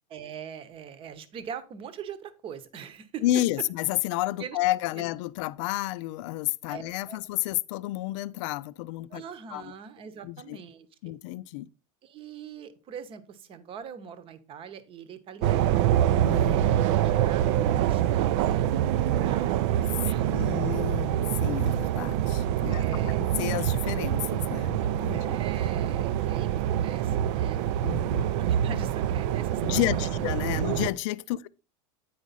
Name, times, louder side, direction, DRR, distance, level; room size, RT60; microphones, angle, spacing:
voice 1, 0.1-3.2 4.4-4.6 4.9-5.0 6.7-7.2 9.1-10.9 12.0-15.8 16.4-17.5 17.8-19.7 20.0-20.6 22.6-23.2 25.1-30.1 30.5-30.7 31.3-31.5, right 7 dB, 35° right, 0.9 m, -42 dB
voice 2, 3.2-9.2 9.5-9.7 10.2-10.6 11.0-11.7 16.2-16.6 17.0-17.1 20.2-22.8 23.4-25.4 27.8-28.3 29.6-31.5, left 16 dB, 70° left, 0.4 m, -31 dB
sound 1, 15.4-30.9, right 11 dB, 65° right, 0.4 m, -25 dB
9.3 x 4.8 x 4.0 m
supercardioid pair, 140°, 16 cm